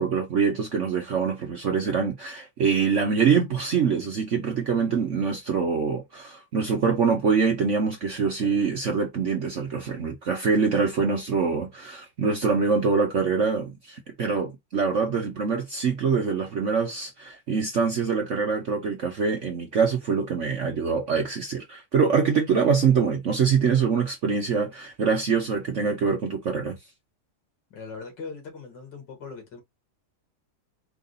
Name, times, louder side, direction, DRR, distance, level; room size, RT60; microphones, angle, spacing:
voice 1, 0.0-26.8, right 5 dB, 55° right, 0.9 m, -24 dB
voice 2, 27.7-29.6, left 4 dB, 70° left, 2.3 m, -40 dB
4.8 x 2.4 x 3.9 m
omnidirectional pair, 2.0 m